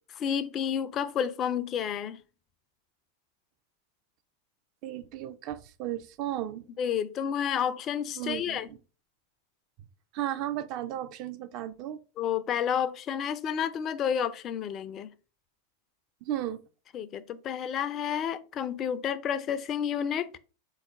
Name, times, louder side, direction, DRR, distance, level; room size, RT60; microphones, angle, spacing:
voice 1, 0.2-2.2 6.8-8.7 12.2-15.1 16.9-20.4, left 8 dB, 30° left, 0.3 m, -30 dB
voice 2, 4.8-6.6 8.2-8.8 10.1-12.0 16.2-16.6, right 12 dB, 40° right, 0.4 m, -34 dB
3.9 x 2.3 x 3.5 m
figure-of-eight pair, 90°, 0 cm